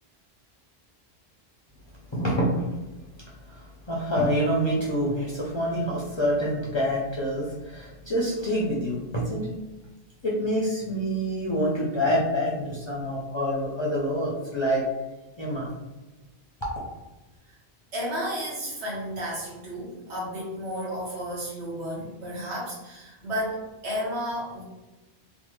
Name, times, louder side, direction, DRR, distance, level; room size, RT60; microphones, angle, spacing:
voice 1, 2.1-2.6 3.4-9.5 10.2-14.9 15.4-15.7, equal, 35° left, -5 dB, 0.5 m, -26 dB
voice 2, 17.9-24.6, equal, 75° right, -4 dB, 1.3 m, -32 dB
3.2 x 2.2 x 3.1 m, 1.1 s
omnidirectional pair, 1.1 m